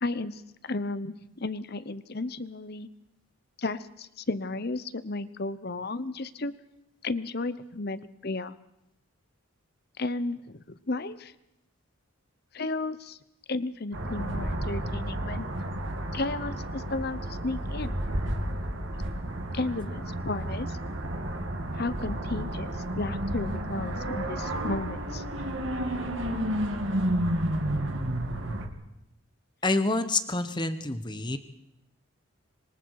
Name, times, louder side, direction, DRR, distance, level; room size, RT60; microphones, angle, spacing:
voice 1, 0.0-2.9 3.6-6.5 7.0-8.5 10.0-11.3 12.5-13.2 13.5-15.5 16.1-18.2 19.5-20.8 21.7-25.2, left 2 dB, 50° left, 14 dB, 0.9 m, -33 dB
sound 1, 13.9-28.7, right 1 dB, 65° right, 2.7 m, -31 dB
voice 2, 29.6-31.4, left 2 dB, 20° left, 10 dB, 1.1 m, -27 dB
26.0 x 23.5 x 4.9 m, 0.86 s
head